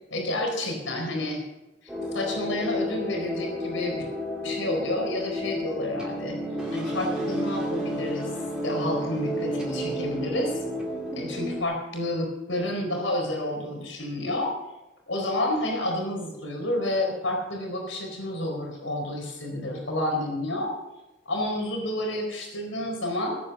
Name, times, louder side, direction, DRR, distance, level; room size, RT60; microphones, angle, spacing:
voice 1, 0.1-1.4 1.8-4.1 4.4-6.4 6.7-8.3 8.6-10.6 11.1-14.5 15.1-20.7 21.3-23.4, left 1 dB, 80° left, 1 dB, 4.4 m, -30 dB
sound 1, 1.9-11.6, equal, 5° right, 2.6 m, -31 dB
18.0 x 8.7 x 6.8 m, 0.99 s
head